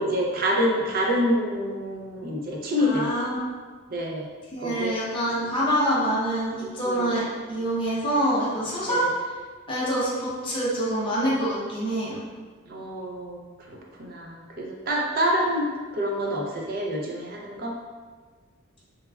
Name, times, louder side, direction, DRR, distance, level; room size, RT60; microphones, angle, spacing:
voice 1, 0.0-3.1 3.9-4.3 4.6-4.9 6.9-7.1 8.9-9.1 12.7-13.4 14.0-15.7 15.9-17.7, equal, 45° right, -1 dB, 0.4 m, -27 dB
voice 2, 2.8-3.5 4.5-9.1 9.7-12.2, equal, 25° left, -7 dB, 0.6 m, -26 dB
3.2 x 2.2 x 2.3 m, 1.5 s
head